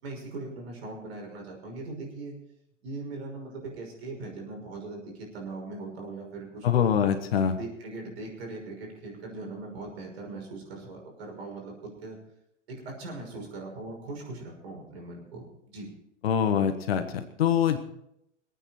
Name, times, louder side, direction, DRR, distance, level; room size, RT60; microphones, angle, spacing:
voice 1, 0.0-2.3 2.8-6.9 7.5-12.2 12.7-15.9, right 3 dB, 55° right, 1 dB, 5.9 m, -40 dB
voice 2, 6.6-7.6 16.2-17.8, left 8 dB, 55° left, 8 dB, 1.5 m, -24 dB
26.0 x 9.1 x 4.5 m, 0.78 s
figure-of-eight pair, 105°, 37 cm